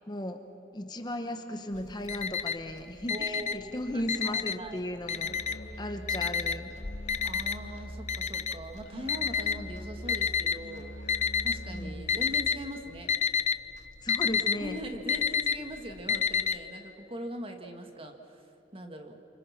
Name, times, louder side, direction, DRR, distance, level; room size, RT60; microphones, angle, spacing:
voice 1, 0.1-0.4 0.7-5.4 5.8-6.7 11.7-12.1 14.0-14.8, left 1 dB, 25° left, 6 dB, 1.1 m, -36 dB
Alarm, 1.8-2.7 3.0-4.7 5.1-5.7 6.1-10.6 11.1-11.7 12.0-12.6 12.9-16.6, left 6 dB, 40° left, 0.7 m, -29 dB
voice 2, 3.1-4.9 7.2-11.0 11.4-13.1 14.6-18.4 18.7-19.2, equal, 30° right, 4 dB, 1.9 m, -41 dB
Musical instrument, 5.1-12.6, equal, 80° left, 3.2 m, -43 dB
28.0 x 25.5 x 6.0 m, 2.9 s
head